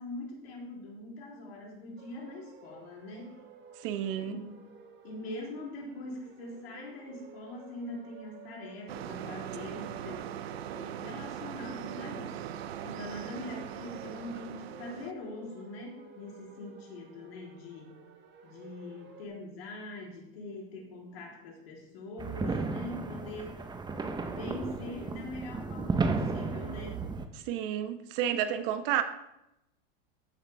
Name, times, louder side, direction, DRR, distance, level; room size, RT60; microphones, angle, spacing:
voice 1, 0.0-3.4 4.2-4.6 5.0-10.3 10.7-12.4 12.8-17.9 18.4-23.6 24.3-27.1, left 2 dB, 80° left, 3.7 m, -43 dB
sound 1, 2.0-19.3, right 5 dB, 35° right, 1.7 m, -53 dB
voice 2, 3.8-4.3 27.5-29.0, right 10 dB, 60° right, 1.1 m, -30 dB
sound 2, 8.9-15.1, right 10 dB, 85° right, 0.7 m, -40 dB
sound 3, 22.2-27.3, right 4 dB, 15° right, 0.8 m, -33 dB
13.5 x 6.6 x 3.5 m
hypercardioid pair, 110°, 30 cm